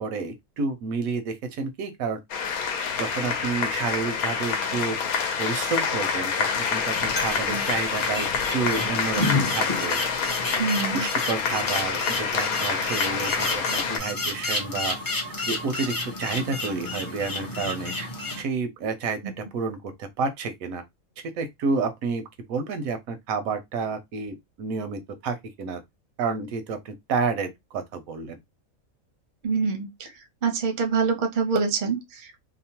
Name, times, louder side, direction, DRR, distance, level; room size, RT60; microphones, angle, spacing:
voice 1, 0.0-2.2 3.0-5.0 5.4-10.0 10.9-15.0 15.5-18.1 18.4-20.8 21.4-22.2 22.5-25.8 26.2-28.4, right 4 dB, 80° right, 1.0 m, -30 dB
sound 1, 2.3-14.0, left 6 dB, 85° left, 1.1 m, -27 dB
sound 2, 6.8-18.4, left 2 dB, 25° left, 0.4 m, -31 dB
voice 2, 10.6-11.1 19.2-19.3 29.4-30.1 30.4-32.4, right 5 dB, 50° right, 0.6 m, -26 dB
2.9 x 2.0 x 2.8 m
omnidirectional pair, 1.5 m